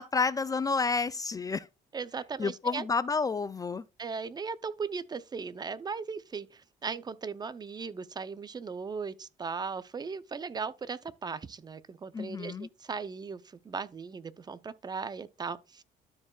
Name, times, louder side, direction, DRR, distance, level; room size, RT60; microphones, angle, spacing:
voice 1, 0.0-1.7 2.4-3.8 12.1-12.7, left 4 dB, 20° left, 0.4 m, -30 dB
voice 2, 1.9-2.9 4.0-15.8, right 5 dB, 25° right, 0.6 m, -38 dB
13.0 x 4.5 x 2.4 m
cardioid pair, 110°, 17 cm